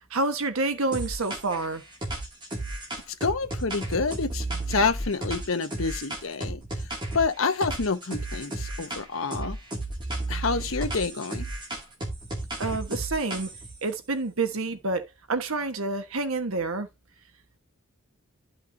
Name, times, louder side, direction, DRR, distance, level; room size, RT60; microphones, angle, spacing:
voice 1, 0.1-1.8 12.6-13.5 13.8-16.9, right 3 dB, 80° right, 1.2 m, -28 dB
sound 1, 0.9-1.6 2.0-7.3 7.6-9.0 9.3-13.7, right 2 dB, 20° right, 2.3 m, -33 dB
voice 2, 3.2-6.6 7.1-9.6 10.3-11.5, left 4 dB, 70° left, 1.0 m, -28 dB
12.0 x 5.7 x 2.7 m
head